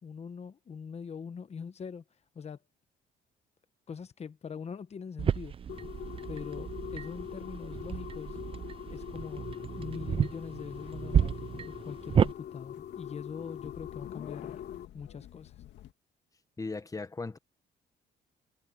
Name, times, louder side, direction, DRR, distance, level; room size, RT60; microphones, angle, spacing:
voice 1, 0.0-2.0 2.3-2.6 3.9-5.5 6.3-8.4 8.9-9.5 9.8-14.6 14.9-15.6, left 6 dB, 35° left, 1.1 m, -42 dB
sound 1, 5.2-12.3, right 8 dB, 30° right, 0.4 m, -32 dB
sound 2, 5.7-14.9, left 10 dB, 65° left, 3.0 m, -43 dB
sound 3, 10.8-15.9, left 12 dB, 85° left, 1.9 m, -51 dB
voice 2, 16.6-17.4, left 3 dB, 20° left, 1.3 m, -37 dB
cardioid pair, 115°, 18 cm